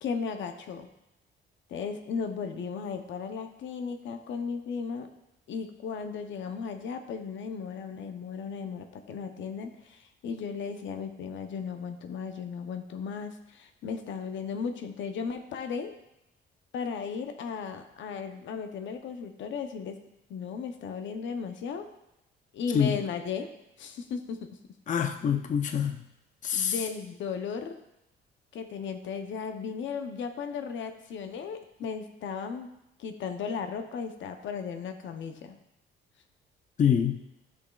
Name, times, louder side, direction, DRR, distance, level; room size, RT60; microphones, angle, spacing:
voice 1, 0.0-0.9 1.7-5.1 5.5-15.9 16.7-20.0 20.3-21.9 22.5-23.5 23.8-24.5 26.5-27.7 28.5-32.7 33.0-35.6, left 6 dB, 70° left, 7 dB, 0.8 m, -35 dB
voice 2, 24.9-26.0 26.4-26.8 36.8-37.2, left 8 dB, 40° left, 7 dB, 0.5 m, -25 dB
12.0 x 6.2 x 2.4 m, 0.88 s
cardioid pair, 90°, 20 cm